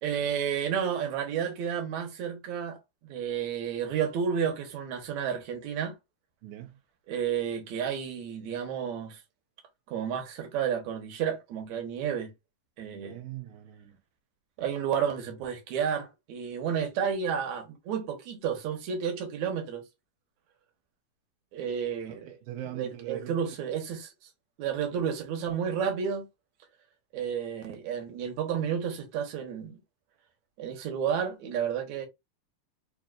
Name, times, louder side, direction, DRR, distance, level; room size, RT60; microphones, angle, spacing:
voice 1, 0.0-2.8 3.0-5.9 7.1-9.2 9.9-12.3 12.8-13.2 14.6-19.8 21.5-22.4 22.7-24.1 24.6-26.3 27.1-29.8 30.6-32.1, right 7 dB, 75° right, 2.2 m, -31 dB
voice 2, 6.4-6.8 13.0-14.0 22.1-23.4, right 13 dB, 90° right, 2.2 m, -41 dB
5.1 x 2.6 x 2.4 m
omnidirectional pair, 3.4 m